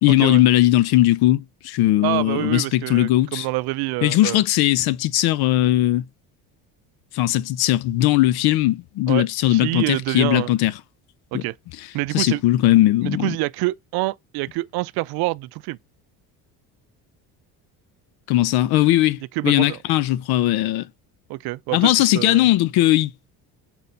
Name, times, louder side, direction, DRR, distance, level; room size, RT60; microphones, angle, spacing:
voice 1, 0.0-3.5 4.0-6.0 7.1-10.7 11.3-11.4 12.1-13.4 18.3-20.9 21.7-23.1, left 15 dB, 65° left, 0.6 m, -19 dB
voice 2, 2.0-4.4 9.1-10.5 11.3-11.6 11.9-12.4 13.0-15.8 19.4-19.8 21.3-22.5, right 21 dB, 65° right, 0.5 m, -26 dB
4.2 x 4.2 x 5.3 m
supercardioid pair, 100°, 41 cm